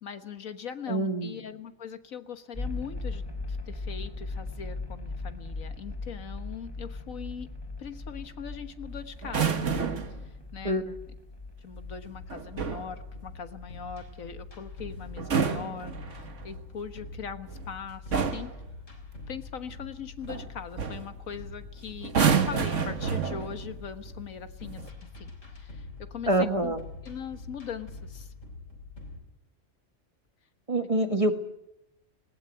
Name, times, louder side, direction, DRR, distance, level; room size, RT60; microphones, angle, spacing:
voice 1, 0.0-3.2 3.5-7.5 7.8-9.7 10.2-10.8 11.6-18.5 19.3-26.8 27.0-28.3 31.0-31.1, left 7 dB, 85° left, 9 dB, 1.8 m, -41 dB
voice 2, 0.9-1.4 10.6-10.8 26.3-26.8 30.7-31.3, right 1 dB, 25° right, 7 dB, 1.6 m, -25 dB
sound 1, 2.5-18.9, left 3 dB, 15° left, 3.1 m, -40 dB
sound 2, 9.2-10.2 12.3-12.9 15.1-16.4 17.5-17.7 18.1-18.6 20.3-20.5 20.8-21.1 22.0-23.7 24.6-24.9, right 6 dB, 65° right, 1.7 m, -28 dB
sound 3, 11.8-29.2, left 3 dB, 70° left, 4.2 m, -45 dB
19.5 x 19.0 x 9.0 m, 0.82 s
omnidirectional pair, 1.4 m